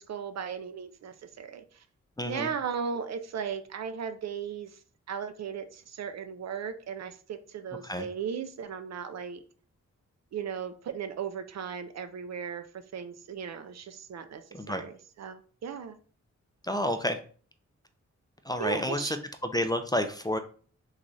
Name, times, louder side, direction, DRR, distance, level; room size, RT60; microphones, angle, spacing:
voice 1, 0.0-1.6 2.2-4.7 5.1-9.4 10.3-16.0 18.6-19.2, right 7 dB, 60° right, 10 dB, 0.4 m, -36 dB
voice 2, 2.2-2.5 7.8-8.1 14.5-14.8 16.6-17.2 18.4-19.2 19.4-20.4, left 1 dB, 15° left, 7 dB, 0.3 m, -30 dB
3.1 x 2.4 x 3.8 m, 0.43 s
cardioid pair, 75°, 30 cm